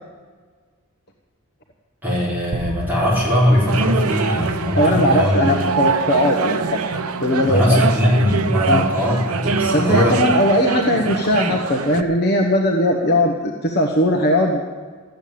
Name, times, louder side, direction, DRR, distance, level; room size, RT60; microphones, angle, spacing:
voice 1, 2.0-5.4 7.4-10.2, left 1 dB, 10° right, -7 dB, 4.7 m, -19 dB
sound 1, 2.5-5.1, right 2 dB, 35° right, 0.7 m, -34 dB
sound 2, 3.7-12.0, right 4 dB, 80° right, 0.8 m, -23 dB
voice 2, 4.8-6.9 7.2-7.8 8.7-8.8 9.7-14.7, left 1 dB, 45° left, 1 dB, 1.2 m, -19 dB
13.5 x 9.2 x 8.6 m, 1.5 s
head